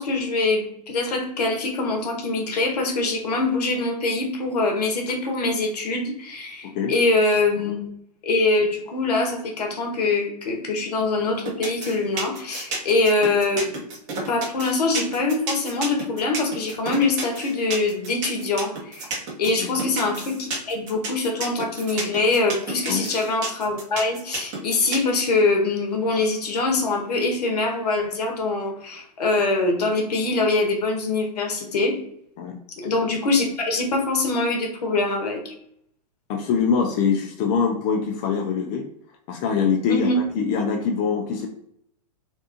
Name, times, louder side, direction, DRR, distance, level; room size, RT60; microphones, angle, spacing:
voice 1, 0.0-7.9 8.2-13.8 14.2-19.1 19.4-32.0 32.8-35.5 39.9-40.2, left 3 dB, 70° left, 2 dB, 0.8 m, -23 dB
sound 1, 11.5-25.1, right 3 dB, 35° right, 0.9 m, -31 dB
voice 2, 36.3-38.9 39.3-40.1 40.3-41.5, left 6 dB, 35° left, 2 dB, 0.4 m, -23 dB
2.6 x 2.3 x 2.4 m, 0.70 s
hypercardioid pair, 110°, 21 cm